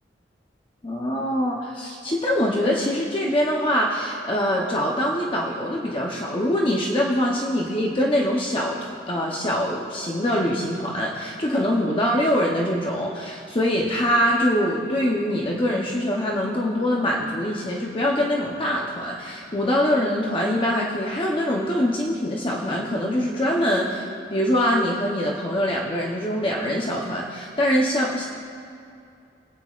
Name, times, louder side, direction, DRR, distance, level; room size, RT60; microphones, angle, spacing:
voice 1, 0.8-28.3, equal, 30° left, -2 dB, 0.9 m, -24 dB
23.5 x 9.2 x 2.5 m, 2.5 s
head